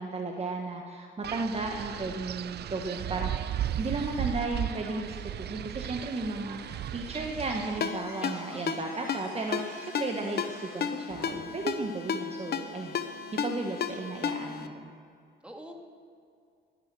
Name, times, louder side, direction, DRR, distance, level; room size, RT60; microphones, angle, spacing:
voice 1, 0.0-13.0 13.4-14.9, right 3 dB, 30° right, 1 dB, 1.4 m, -34 dB
Wind, 1.2-7.8, right 11 dB, 55° right, 0.5 m, -35 dB
Slam / Squeak, 6.6-11.6, right 3 dB, 80° right, 3.7 m, -51 dB
Ringtone, 7.8-14.7, left 7 dB, 55° left, 0.9 m, -34 dB
voice 2, 8.2-8.8 15.4-15.7, right 1 dB, 5° right, 1 dB, 2.3 m, -45 dB
18.5 x 10.5 x 6.2 m, 2.3 s
cardioid pair, 90°, 20 cm